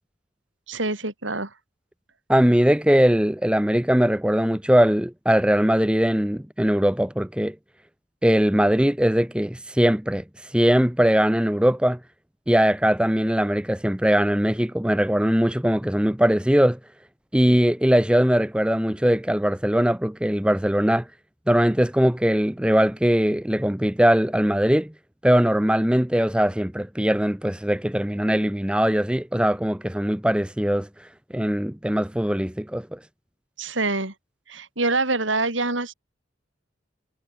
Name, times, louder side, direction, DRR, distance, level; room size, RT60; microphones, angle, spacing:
voice 1, 0.7-1.5 33.6-34.1 34.5-35.9, right 3 dB, 75° right, 5.8 m, -25 dB
voice 2, 2.3-7.5 8.2-12.0 12.5-16.8 17.3-21.1 21.5-24.9 25.2-30.9 31.3-33.0, equal, 5° right, 0.7 m, -21 dB
head